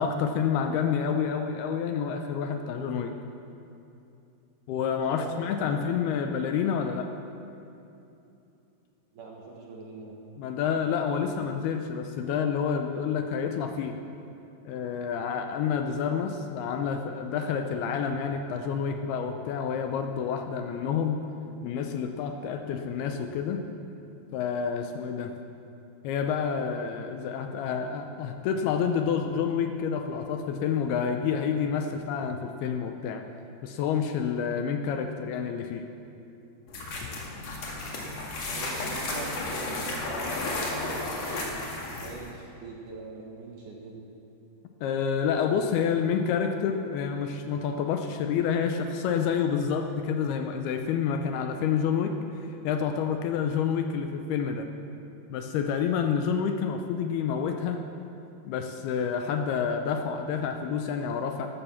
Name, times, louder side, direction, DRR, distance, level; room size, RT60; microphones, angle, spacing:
voice 1, 0.0-3.1 4.7-7.1 10.4-14.0 14.7-21.2 21.6-23.6 24.3-25.4 26.0-33.2 33.6-35.8 44.8-52.1 52.4-54.7 55.3-57.8 58.5-61.5, left 7 dB, 80° left, 5 dB, 2.5 m, -28 dB
voice 2, 5.0-6.3 9.1-10.2 38.5-41.6 42.0-44.1 45.6-45.7, right 3 dB, 60° right, -1 dB, 2.5 m, -43 dB
sound 1, 36.7-42.3, left 2 dB, 50° left, 2.6 m, -33 dB
12.5 x 12.5 x 7.1 m, 2.8 s
omnidirectional pair, 4.9 m